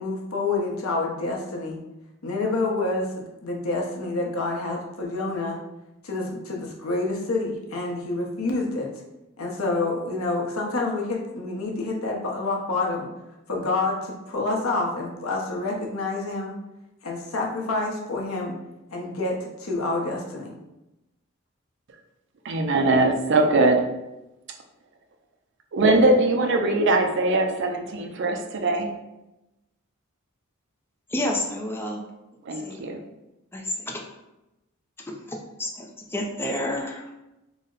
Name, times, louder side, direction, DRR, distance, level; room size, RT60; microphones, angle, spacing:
voice 1, 0.0-1.8 2.2-5.6 6.0-8.9 9.4-13.1 13.5-16.6 17.0-18.6 18.9-20.5, left 2 dB, 80° left, -1 dB, 0.8 m, -28 dB
voice 2, 22.4-23.9 25.7-28.9 32.5-33.0, right 2 dB, 55° right, 5 dB, 0.5 m, -21 dB
voice 3, 31.1-32.0 32.5-32.8 33.5-34.0 35.1-37.1, left 1 dB, 10° left, 0 dB, 0.4 m, -30 dB
3.9 x 2.1 x 3.8 m, 0.95 s
head